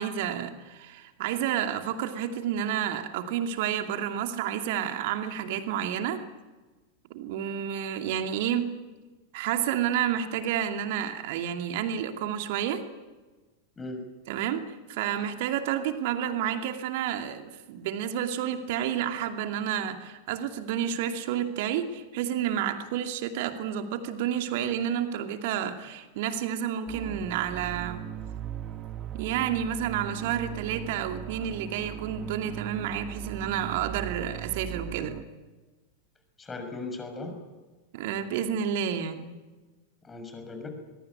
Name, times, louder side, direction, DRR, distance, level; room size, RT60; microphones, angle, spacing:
voice 1, 0.0-6.2 7.1-8.7 9.3-12.8 14.3-14.6 14.9-28.0 29.1-35.1 37.9-39.3, right 9 dB, 50° right, 6 dB, 2.5 m, -30 dB
sound 1, 26.9-35.2, right 10 dB, 30° right, 1.9 m, -39 dB
voice 2, 36.4-37.4 40.0-40.7, left 3 dB, 15° left, 5 dB, 6.4 m, -38 dB
22.5 x 22.0 x 9.8 m, 1.3 s
figure-of-eight pair, 90°, 0 cm